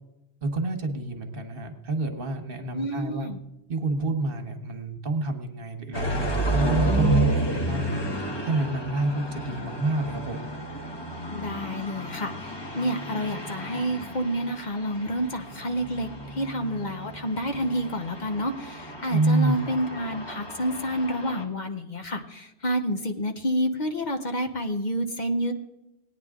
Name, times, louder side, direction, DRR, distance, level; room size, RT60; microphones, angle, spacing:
voice 1, 0.4-3.3 3.7-8.0 8.4-10.4 19.1-19.6, right 2 dB, 55° right, 6 dB, 1.4 m, -28 dB
voice 2, 2.7-3.4 11.3-25.5, equal, 45° left, 5 dB, 1.0 m, -29 dB
sound 1, 5.9-21.4, right 1 dB, 25° left, 1.4 m, -31 dB
18.5 x 9.5 x 3.7 m, 0.91 s
omnidirectional pair, 1.1 m